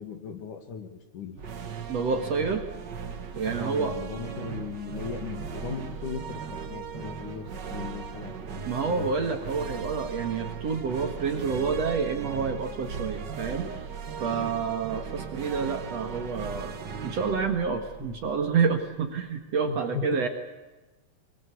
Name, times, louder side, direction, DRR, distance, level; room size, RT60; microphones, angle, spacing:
voice 1, 0.0-1.3 3.6-9.2 14.2-14.5 18.0-18.2 19.7-20.2, left 6 dB, 60° left, 7 dB, 3.2 m, -38 dB
sound 1, 1.3-18.8, right 6 dB, 80° right, 0.9 m, -37 dB
voice 2, 1.9-2.6 3.3-4.0 8.7-13.7 14.2-16.8 17.0-20.3, right 5 dB, 50° right, 6 dB, 2.4 m, -28 dB
24.0 x 22.5 x 8.3 m, 1.1 s
omnidirectional pair, 4.4 m